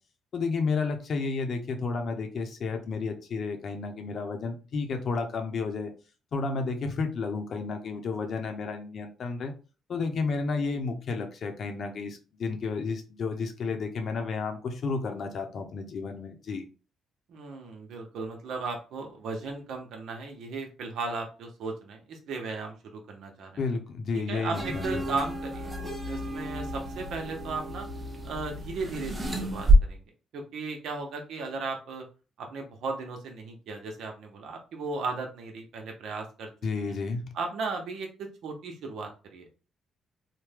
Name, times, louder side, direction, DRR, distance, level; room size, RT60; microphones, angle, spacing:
voice 1, 0.3-5.9 6.3-9.5 9.9-16.6 23.6-25.1 36.6-37.2, left 4 dB, 60° left, 5 dB, 0.8 m, -31 dB
voice 2, 17.3-23.6 24.1-25.7 26.1-27.9 28.2-30.0 30.3-32.0 32.4-36.5 36.8-36.9 37.3-39.6, right 3 dB, 75° right, 2 dB, 0.9 m, -36 dB
sound 1, 24.5-29.7, right 2 dB, 20° right, 0.9 m, -29 dB
3.3 x 2.2 x 3.4 m, 0.34 s
cardioid pair, 90°, 0 cm